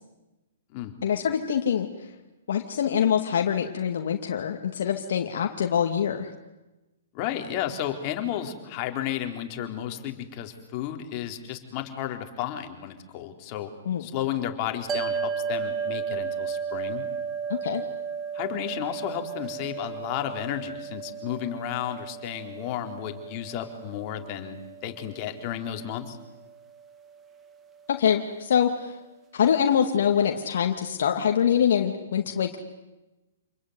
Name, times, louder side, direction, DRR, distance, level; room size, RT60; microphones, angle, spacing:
voice 1, 1.0-1.9 2.5-6.3 13.9-14.0 17.5-17.8 27.9-28.9 29.3-32.6, left 8 dB, 70° left, 3 dB, 2.3 m, -24 dB
voice 2, 7.1-13.7 14.0-17.0 18.3-26.2, left 11 dB, 35° left, 4 dB, 4.0 m, -33 dB
sound 1, 14.9-27.4, right 6 dB, 15° right, 1.8 m, -34 dB
28.0 x 21.5 x 9.6 m, 1.1 s
hypercardioid pair, 140°, 0 cm